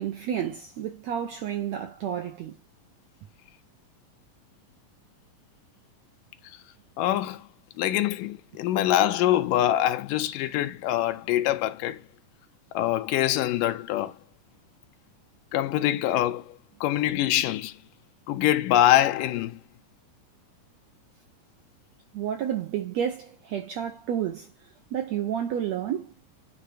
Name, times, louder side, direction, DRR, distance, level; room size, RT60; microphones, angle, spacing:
voice 1, 0.0-2.6 22.1-24.5 24.9-26.1, right 9 dB, 75° right, 1.6 m, -30 dB
voice 2, 7.0-7.5 7.8-12.0 12.7-14.1 15.5-17.8 18.3-19.6, left 13 dB, 75° left, 2.3 m, -24 dB
10.0 x 3.4 x 4.9 m
omnidirectional pair, 4.0 m